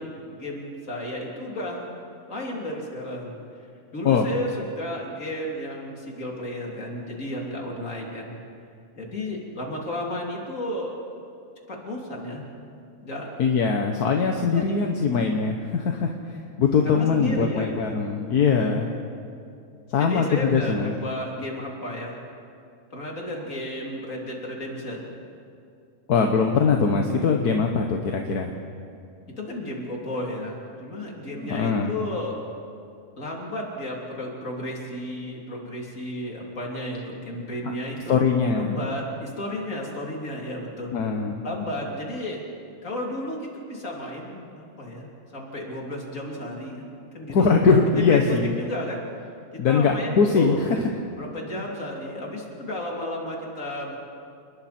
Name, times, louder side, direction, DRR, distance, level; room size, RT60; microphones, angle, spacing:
voice 1, 0.0-1.9 2.3-3.4 3.9-8.3 8.9-11.0 11.7-12.4 13.0-13.3 14.5-14.8 15.1-15.3 16.8-17.7 20.0-22.2 22.9-25.1 29.4-32.4 33.2-38.2 38.5-40.9 41.4-42.5 42.8-46.8 47.1-47.5 47.9-49.0 49.5-50.7 51.2-54.0, left 1 dB, 55° left, -2 dB, 3.6 m, -33 dB
voice 2, 13.4-16.1 16.6-18.9 19.9-20.9 26.1-28.5 31.4-31.9 38.1-38.7 40.9-41.4 47.3-48.5 49.6-50.6, left 5 dB, 80° left, 3 dB, 1.6 m, -21 dB
29.0 x 20.5 x 4.4 m, 2.5 s
omnidirectional pair, 1.6 m